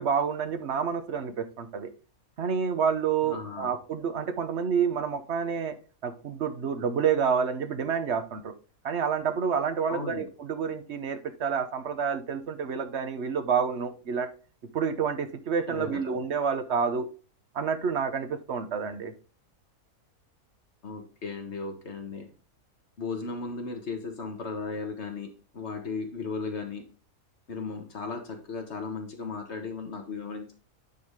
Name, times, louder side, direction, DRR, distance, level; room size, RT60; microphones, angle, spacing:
voice 1, 0.0-1.9 2.4-5.7 6.0-8.5 8.8-14.3 14.7-17.1 17.5-19.1, right 6 dB, 55° right, 9 dB, 1.1 m, -28 dB
voice 2, 3.2-3.7 9.9-10.3 15.7-16.0 20.8-22.3 23.0-26.8 27.5-30.5, left 4 dB, 50° left, 4 dB, 1.7 m, -36 dB
9.6 x 4.9 x 3.6 m, 0.37 s
omnidirectional pair, 1.5 m